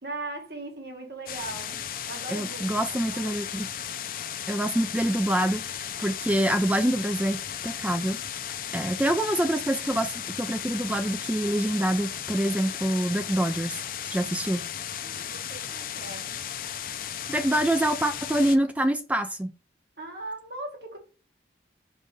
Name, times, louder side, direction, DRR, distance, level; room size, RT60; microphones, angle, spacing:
voice 1, 0.0-3.6 15.0-16.3 20.0-21.0, right 2 dB, 65° right, 1.9 m, -39 dB
sound 1, 1.3-18.6, left 9 dB, 50° left, 0.6 m, -35 dB
voice 2, 2.3-3.7 4.5-8.2 8.7-13.7 14.0-14.6 17.3-19.5, right 1 dB, 10° right, 0.3 m, -26 dB
5.3 x 5.2 x 3.4 m
head